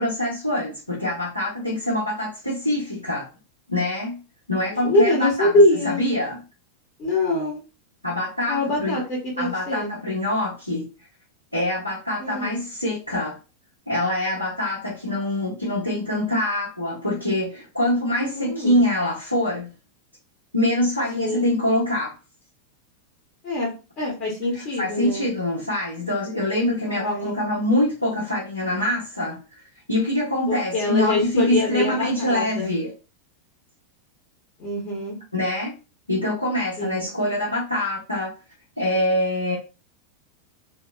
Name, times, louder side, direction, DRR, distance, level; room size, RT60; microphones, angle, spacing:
voice 1, 0.0-3.3 3.7-4.1 4.5-5.5 5.8-6.4 8.0-9.0 9.4-10.9 11.5-13.4 13.9-19.7 20.5-22.1 24.5-29.4 29.9-32.9 35.3-35.7 36.1-38.3 38.8-39.5, left 1 dB, 85° left, -8 dB, 0.9 m, -24 dB
voice 2, 4.7-6.1 7.0-7.6 8.5-10.0 12.2-12.6 18.2-18.9 21.1-21.5 23.4-23.7 24.0-25.3 26.9-27.4 30.5-32.7 34.6-35.2 36.8-37.1, left 1 dB, 35° left, -3 dB, 0.9 m, -24 dB
2.8 x 2.1 x 2.2 m, 0.32 s
figure-of-eight pair, 90°, 0 cm